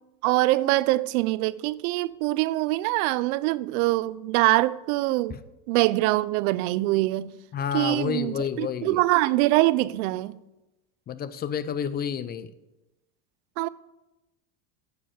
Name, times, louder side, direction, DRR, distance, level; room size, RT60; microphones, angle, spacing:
voice 1, 0.2-5.3 5.7-7.3 7.7-10.4 13.6-13.7, right 18 dB, 70° right, 0.6 m, -24 dB
voice 2, 7.5-9.0 11.1-12.5, left 8 dB, 20° left, 0.4 m, -30 dB
7.0 x 6.8 x 7.4 m
supercardioid pair, 110°, 46 cm